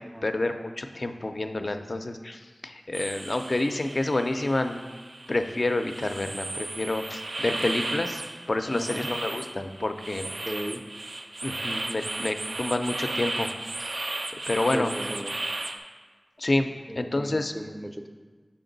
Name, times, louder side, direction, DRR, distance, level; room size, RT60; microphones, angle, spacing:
voice 1, 0.2-4.8 5.3-8.2 8.5-10.2 11.4-13.5 13.8-14.1 14.5-14.9 16.4-16.7 17.0-17.5, left 2 dB, 60° left, 7 dB, 0.4 m, -28 dB
sound 1, 2.9-15.8, right 2 dB, 80° right, 0.3 m, -35 dB
voice 2, 8.7-9.1 10.2-10.8 14.7-15.3 16.9-18.1, equal, 10° right, 6 dB, 0.4 m, -36 dB
5.8 x 4.3 x 3.9 m, 1.4 s
wide cardioid pair, 60°, 0 cm